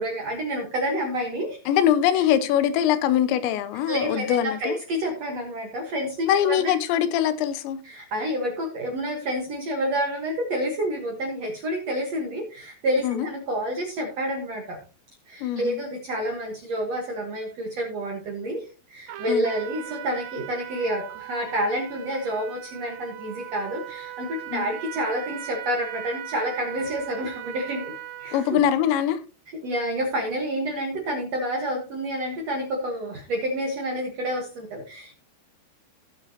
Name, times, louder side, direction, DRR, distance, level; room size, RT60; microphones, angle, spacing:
voice 1, 0.0-1.6 2.1-2.2 3.9-6.7 7.8-14.8 15.3-27.9 28.2-28.6 29.6-35.1, equal, 60° right, 1.7 m, -29 dB
voice 2, 1.7-4.8 6.3-7.8 13.0-13.3 15.4-15.8 19.3-19.5 24.5-24.7 28.3-29.2, left 10 dB, 85° left, 3.0 m, -22 dB
Trumpet, 19.1-28.6, right 13 dB, 85° right, 3.1 m, -39 dB
18.0 x 6.2 x 2.8 m
omnidirectional pair, 5.0 m